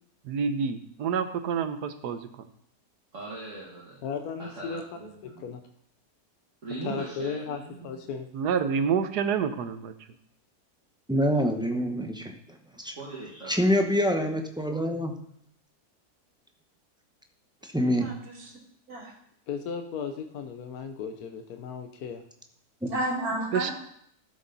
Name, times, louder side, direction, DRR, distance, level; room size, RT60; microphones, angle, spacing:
voice 1, 0.3-2.2 8.3-9.9 23.5-23.7, right 6 dB, 90° right, 10 dB, 1.4 m, -28 dB
voice 2, 3.1-4.0 4.6-5.4 6.6-7.9 12.9-13.5, right 3 dB, 50° right, -6 dB, 2.4 m, -40 dB
voice 3, 4.0-4.8 5.4-5.6 6.8-8.3 19.5-22.2, left 6 dB, 70° left, 6 dB, 1.3 m, -35 dB
voice 4, 11.1-12.3 12.8-12.9 13.5-15.2 17.6-18.1 22.8-22.9, equal, 5° right, 3 dB, 0.5 m, -26 dB
voice 5, 17.8-18.5 18.9-19.1 22.8-23.7, right 1 dB, 70° right, -3 dB, 2.6 m, -32 dB
12.5 x 7.2 x 4.0 m, 0.69 s
omnidirectional pair, 1.7 m